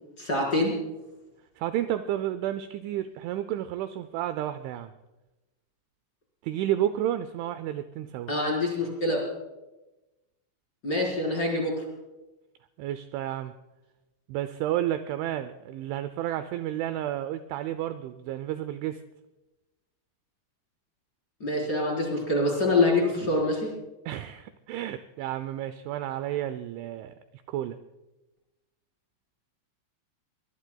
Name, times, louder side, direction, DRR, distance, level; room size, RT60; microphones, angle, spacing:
voice 1, 0.2-0.7 8.3-9.2 10.8-11.8 21.4-23.7, left 2 dB, 20° left, -2 dB, 4.2 m, -25 dB
voice 2, 1.6-4.9 6.4-8.3 12.8-13.5 14.3-19.0 24.1-27.1 27.5-27.8, right 12 dB, 85° right, 11 dB, 2.8 m, -31 dB
23.5 x 21.5 x 2.3 m, 1.0 s
omnidirectional pair, 5.8 m